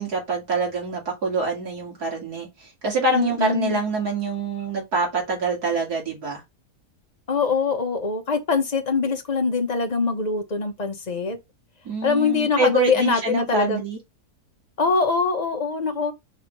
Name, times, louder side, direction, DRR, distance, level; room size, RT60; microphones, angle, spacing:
voice 1, 0.0-6.4 11.8-14.0, right 3 dB, 65° right, 3.3 m, -26 dB
voice 2, 3.1-3.8 7.3-11.4 12.0-13.8 14.8-16.1, left 4 dB, 30° left, 1.1 m, -23 dB
5.4 x 3.6 x 4.7 m
omnidirectional pair, 1.8 m